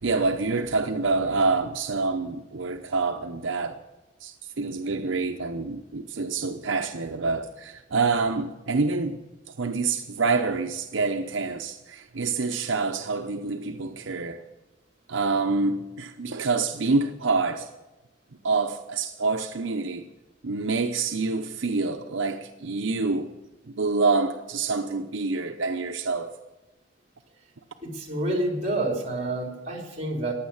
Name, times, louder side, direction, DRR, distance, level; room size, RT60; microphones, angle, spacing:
voice 1, 0.0-3.8 4.2-9.2 9.6-14.4 15.1-17.7 18.4-20.0 20.4-23.3 23.7-26.3, right 4 dB, 80° right, 0.8 m, -27 dB
voice 2, 27.8-30.3, right 1 dB, 35° right, 3.5 m, -28 dB
15.5 x 10.5 x 7.1 m
head